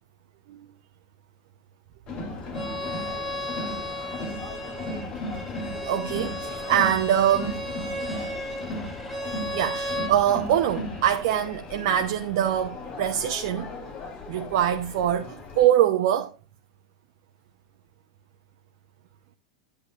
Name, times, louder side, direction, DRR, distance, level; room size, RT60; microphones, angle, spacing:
Crowd, 2.1-15.6, left 2 dB, 35° left, 3.5 m, -36 dB
Bowed string instrument, 2.5-10.1, equal, 5° left, 2.8 m, -34 dB
voice 1, 5.8-7.6 9.5-13.7 14.3-16.4, right 10 dB, 55° right, 0.9 m, -24 dB
10.5 x 8.4 x 2.6 m
hypercardioid pair, 95°, 3 cm